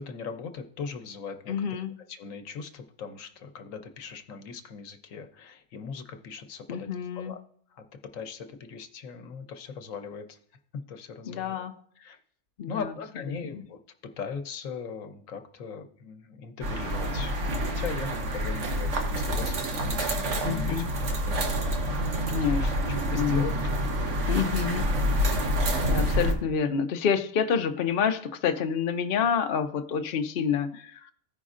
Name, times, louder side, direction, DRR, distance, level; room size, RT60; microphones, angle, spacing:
voice 1, 0.0-1.5 2.1-6.9 7.1-7.4 7.7-7.9 8.1-10.4 10.7-11.6 12.0-12.2 12.7-13.8 14.2-17.4 17.7-22.4 22.9-24.2 24.9-25.2, left 5 dB, 80° left, 7 dB, 1.1 m, -39 dB
voice 2, 1.5-1.9 6.7-7.3 11.3-11.7 12.6-12.9 20.4-20.8 22.3-22.7 23.1-23.4 24.3-24.9 25.8-31.0, left 7 dB, 55° left, 7 dB, 0.8 m, -28 dB
sound 1, 16.6-26.3, equal, 65° right, 1.4 m, -27 dB
15.5 x 5.1 x 2.5 m, 0.62 s
omnidirectional pair, 1.3 m